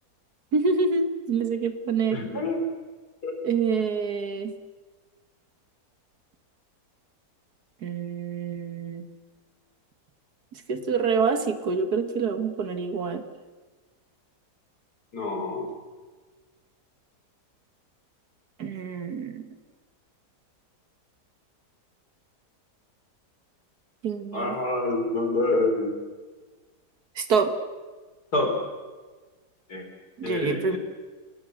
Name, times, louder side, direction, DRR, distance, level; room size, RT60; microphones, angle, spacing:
voice 1, 0.5-2.2 3.4-4.5 7.8-9.0 10.5-13.2 18.6-19.5 24.0-24.6 27.2-27.5 30.2-30.8, right 5 dB, 70° right, 8 dB, 2.1 m, -26 dB
voice 2, 2.1-2.7 3.2-3.3 15.1-15.7 24.3-25.9 28.3-28.6 29.7-29.9 30.2-30.8, left 2 dB, 70° left, 4 dB, 4.3 m, -27 dB
29.0 x 18.0 x 6.5 m, 1.4 s
omnidirectional pair, 1.8 m